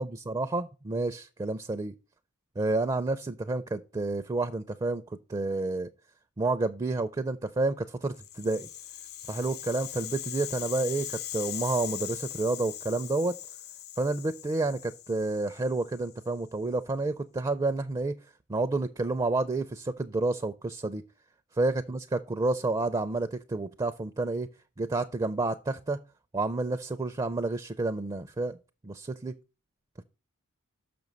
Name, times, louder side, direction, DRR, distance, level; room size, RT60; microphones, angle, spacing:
voice 1, 0.0-1.9 2.6-5.0 5.3-5.9 6.4-8.7 9.2-13.4 14.0-18.1 18.5-21.0 21.5-22.0 22.3-24.5 24.8-26.0 26.3-28.6 28.8-29.4, right 2 dB, 20° right, 0.4 m, -30 dB
Rattle (instrument), 8.1-16.3, left 12 dB, 45° left, 0.4 m, -40 dB
6.2 x 6.1 x 5.2 m
head